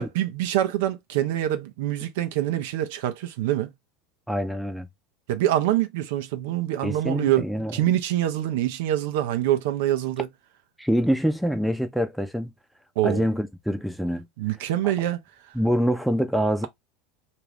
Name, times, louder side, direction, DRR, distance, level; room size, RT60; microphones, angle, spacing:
voice 1, 0.0-3.7 5.3-10.3 13.0-13.3 14.4-15.2, right 13 dB, 70° right, 0.5 m, -25 dB
voice 2, 4.3-4.9 6.8-7.7 10.8-12.5 13.0-14.3 15.5-16.7, equal, ahead, 0.6 m, -25 dB
2.4 x 2.3 x 3.4 m
hypercardioid pair, 85°, 0 cm